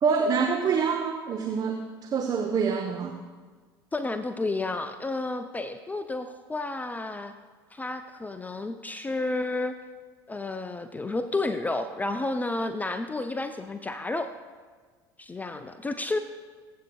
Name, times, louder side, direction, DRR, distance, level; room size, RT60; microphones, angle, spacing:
voice 1, 0.0-3.2, right 5 dB, 30° right, 4 dB, 0.9 m, -26 dB
voice 2, 3.9-7.3 7.7-9.8 10.3-14.3 15.2-16.2, left 2 dB, 15° left, 9 dB, 0.5 m, -31 dB
22.0 x 8.2 x 2.3 m, 1.5 s
figure-of-eight pair, 65°, 12 cm